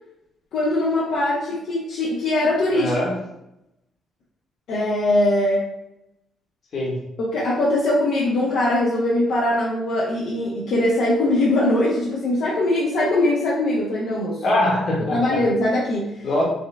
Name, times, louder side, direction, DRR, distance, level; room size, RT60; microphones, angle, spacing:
voice 1, 0.5-2.9 4.7-5.6 7.2-14.4 15.0-16.2, left 1 dB, 75° left, -6 dB, 1.0 m, -21 dB
voice 2, 2.7-3.1 6.7-6.9 14.4-15.4 16.2-16.4, left 1 dB, 55° left, -3 dB, 1.5 m, -22 dB
5.4 x 2.3 x 3.4 m, 0.86 s
cardioid pair, 90°, 0 cm